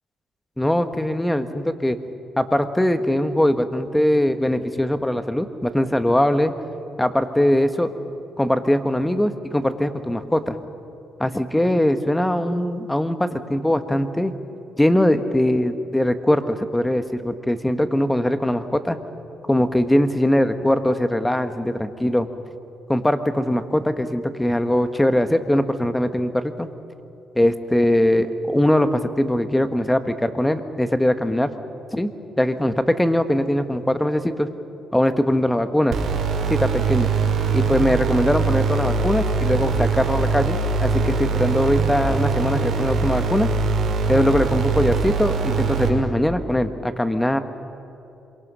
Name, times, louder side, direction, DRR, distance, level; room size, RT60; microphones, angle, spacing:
voice 1, 0.6-2.0 2.4-6.5 7.0-7.9 8.4-10.6 11.2-14.3 14.8-19.0 19.5-22.3 22.9-26.7 27.3-31.5 31.9-32.1 32.4-34.5 34.9-36.0 36.5-37.1 37.5-43.5 44.1-47.4, left 1 dB, 10° left, 9 dB, 1.5 m, -21 dB
sound 1, 35.9-45.9, right 5 dB, 65° right, 5.6 m, -22 dB
27.0 x 24.0 x 6.4 m, 2.8 s
cardioid pair, 90°, 0 cm